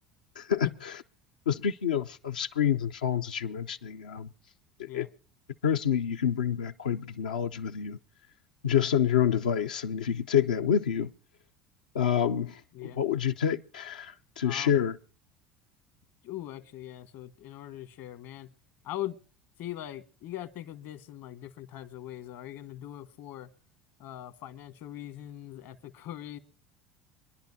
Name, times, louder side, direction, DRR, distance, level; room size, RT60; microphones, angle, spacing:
voice 1, 0.4-0.9 1.5-4.3 4.8-5.1 5.6-8.0 8.6-11.1 11.9-14.9, left 8 dB, 85° left, 0.5 m, -28 dB
voice 2, 14.4-14.7 16.2-18.5 18.8-19.2 19.6-23.5 24.0-26.4, left 13 dB, 65° left, 1.3 m, -41 dB
25.5 x 10.5 x 2.7 m
hypercardioid pair, 70°, 4 cm